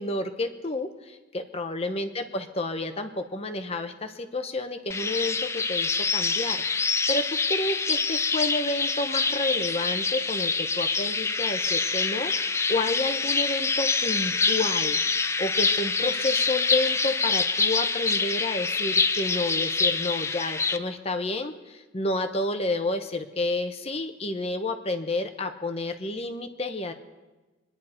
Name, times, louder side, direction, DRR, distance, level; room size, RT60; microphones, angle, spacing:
voice 1, 0.0-7.2 7.5-26.9, left 2 dB, 30° left, 6 dB, 0.8 m, -30 dB
sound 1, 4.9-20.8, left 4 dB, 15° left, 0.4 m, -26 dB
24.5 x 10.5 x 4.4 m, 1.2 s
head